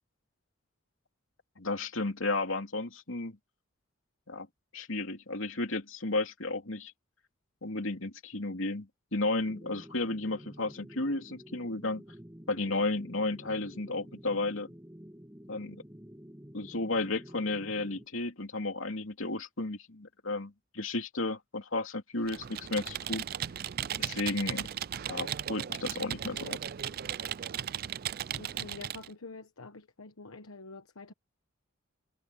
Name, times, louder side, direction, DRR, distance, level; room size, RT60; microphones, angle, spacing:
voice 1, 1.6-3.4 4.3-4.5 4.7-6.9 7.6-12.0 12.5-14.7 15.5-15.8 16.5-23.2 24.0-24.7 25.1-26.6, left 2 dB, 70° left, 2.8 m, -33 dB
sound 1, 9.4-18.1, equal, 10° right, 1.6 m, -50 dB
Computer keyboard, 22.2-29.1, right 10 dB, 45° right, 0.4 m, -36 dB
voice 2, 28.4-31.1, left 3 dB, 85° left, 1.2 m, -47 dB
head